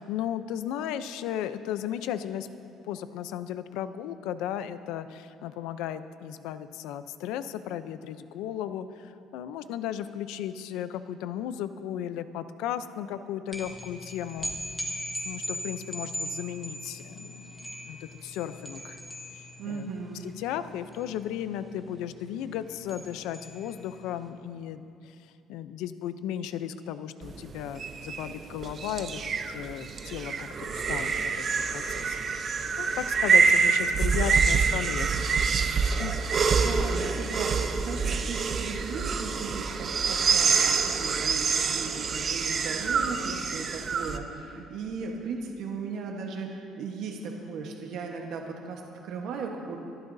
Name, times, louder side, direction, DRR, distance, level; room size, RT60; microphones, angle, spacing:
voice 1, 0.0-2.5 2.8-14.5 15.2-19.0 19.3-19.9 20.2-25.2 25.5-35.4 35.6-36.1, left 10 dB, 85° left, 12 dB, 0.6 m, -35 dB
sound 1, 13.5-24.1, equal, 5° left, 1.3 m, -39 dB
voice 2, 19.6-20.2 36.5-49.8, right 4 dB, 60° right, 1 dB, 1.2 m, -37 dB
sound 2, 27.2-44.2, right 5 dB, 30° right, 0.6 m, -26 dB
26.5 x 12.0 x 2.7 m, 2.6 s
cardioid pair, 175°, 0 cm